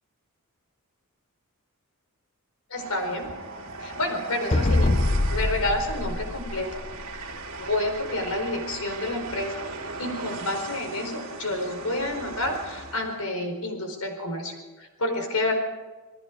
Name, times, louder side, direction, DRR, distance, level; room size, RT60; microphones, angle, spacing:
voice 1, 2.7-3.3 3.8-5.0 5.3-6.8 7.6-9.6 10.0-15.5, left 1 dB, 80° left, 5 dB, 4.4 m, -29 dB
Train, 2.7-13.2, right 3 dB, 60° right, 2.5 m, -38 dB
sound 1, 4.5-7.2, left 2 dB, 30° left, 0.6 m, -24 dB
28.0 x 19.5 x 4.8 m, 1.2 s
head